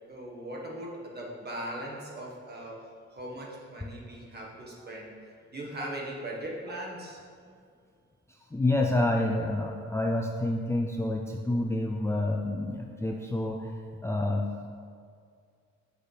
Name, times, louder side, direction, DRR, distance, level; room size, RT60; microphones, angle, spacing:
voice 1, 0.1-7.2, right 1 dB, 35° right, -2 dB, 1.5 m, -39 dB
voice 2, 8.3-14.5, left 1 dB, 10° left, 1 dB, 0.4 m, -28 dB
8.1 x 6.1 x 3.3 m, 2.2 s
cardioid pair, 90°, 30 cm